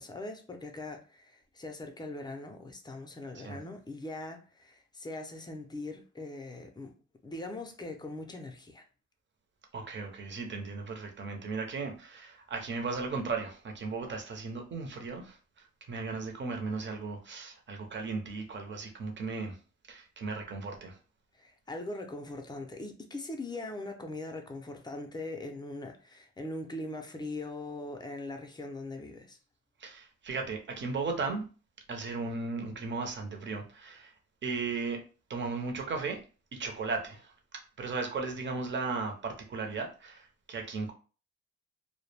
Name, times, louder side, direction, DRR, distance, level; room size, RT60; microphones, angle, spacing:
voice 1, 0.0-6.9 7.2-8.8 21.4-29.4, left 2 dB, 15° left, 0.5 m, -41 dB
voice 2, 9.7-15.4 15.9-19.6 19.9-21.0 29.8-31.4 31.9-34.1 34.4-35.0 35.3-36.2 36.5-37.3 37.8-40.9, right 4 dB, 40° right, 0.7 m, -36 dB
2.2 x 2.1 x 3.2 m
cardioid pair, 90°, 30 cm